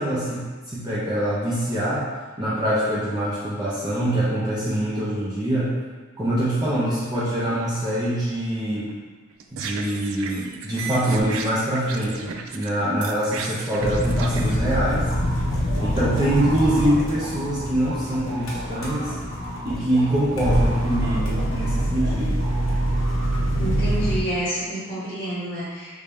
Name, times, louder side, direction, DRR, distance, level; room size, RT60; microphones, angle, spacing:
voice 1, 0.0-2.1 2.4-5.7 6.2-8.9 9.5-15.1 15.8-19.2 19.6-22.3, right 1 dB, 20° right, -9 dB, 0.5 m, -24 dB
sound 1, 9.3-12.7 13.0-14.6, right 5 dB, 75° right, 0.3 m, -34 dB
sound 2, 13.8-24.2, equal, 70° left, 0.7 m, -25 dB
sound 3, 15.1-22.1 22.4-23.4, right 1 dB, 55° right, 0.7 m, -37 dB
voice 2, 23.6-26.0, equal, 15° left, -12 dB, 1.2 m, -30 dB
3.3 x 2.7 x 3.4 m, 1.4 s
head